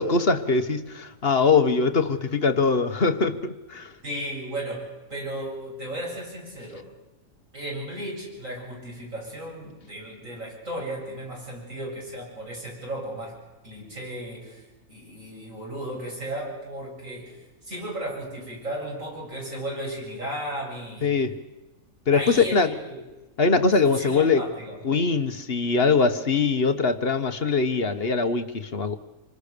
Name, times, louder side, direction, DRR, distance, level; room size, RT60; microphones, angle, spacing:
voice 1, 0.0-3.9 21.0-21.4 22.1-22.7 23.4-24.4 24.8-29.0, left 4 dB, 40° left, 1.4 m, -22 dB
voice 2, 4.0-6.9 7.5-21.3 22.1-23.0 23.8-24.8, right 1 dB, 55° right, 8.4 m, -35 dB
27.0 x 25.0 x 6.8 m
omnidirectional pair, 1.7 m